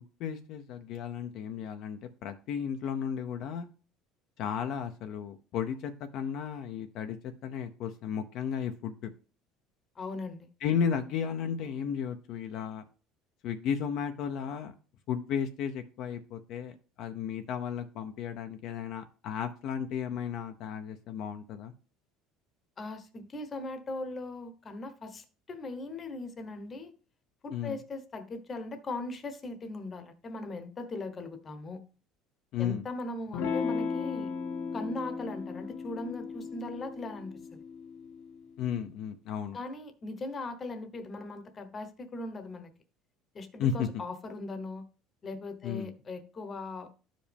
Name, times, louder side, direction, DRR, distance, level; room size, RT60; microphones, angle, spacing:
voice 1, 0.2-3.7 4.4-7.2 7.4-9.1 10.6-12.9 13.4-14.7 15.1-16.7 17.0-21.7 27.5-27.8 32.5-32.8 38.6-39.6 43.6-43.9 45.6-45.9, left 7 dB, 55° left, 0.7 m, -34 dB
voice 2, 9.9-10.5 22.8-26.9 27.4-31.8 32.6-34.3 34.7-37.6 39.5-42.7 43.3-44.8 45.2-46.9, left 2 dB, 25° left, 1.1 m, -39 dB
Electric guitar / Strum, 33.3-38.4, left 5 dB, 80° left, 1.2 m, -36 dB
12.5 x 5.1 x 3.5 m
cardioid pair, 140°, 0 cm